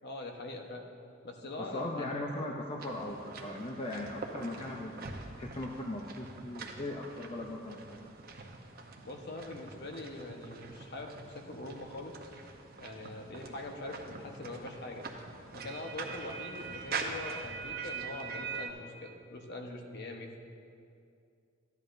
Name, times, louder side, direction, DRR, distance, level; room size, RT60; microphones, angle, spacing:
voice 1, 0.0-0.9 1.2-2.1 9.0-12.2 12.8-15.0 15.5-20.4, left 2 dB, 55° left, 2 dB, 1.0 m, -43 dB
voice 2, 1.6-5.1 5.4-8.2, left 1 dB, 30° left, 0 dB, 0.6 m, -39 dB
sound 1, 2.8-18.7, right 4 dB, 45° right, 0.9 m, -43 dB
14.0 x 10.5 x 2.6 m, 2.4 s
head